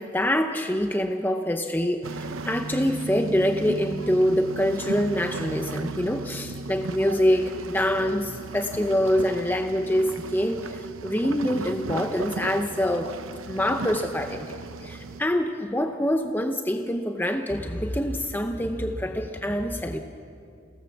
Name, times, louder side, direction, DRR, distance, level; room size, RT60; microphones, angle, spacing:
voice 1, 0.0-13.2 13.5-20.0, equal, 10° left, 5 dB, 0.7 m, -25 dB
sound 1, 2.0-15.2, right 3 dB, 85° right, 0.8 m, -36 dB
30.0 x 18.0 x 7.2 m, 2.5 s
head